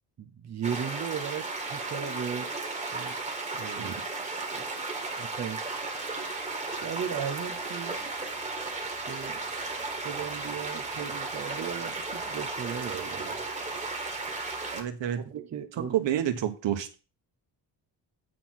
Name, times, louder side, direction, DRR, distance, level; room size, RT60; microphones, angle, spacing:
voice 1, 0.2-3.2 3.5-4.0 4.5-4.7 5.2-5.7 6.8-8.0 9.1-9.4 10.0-13.4 15.2-16.0, right 8 dB, 40° right, 0.9 m, -36 dB
sound 1, 0.6-14.8, right 3 dB, 15° right, 1.8 m, -35 dB
voice 2, 14.7-15.2 15.8-17.0, right 10 dB, 85° right, 1.5 m, -29 dB
9.2 x 4.5 x 6.0 m
wide cardioid pair, 165°, 42 cm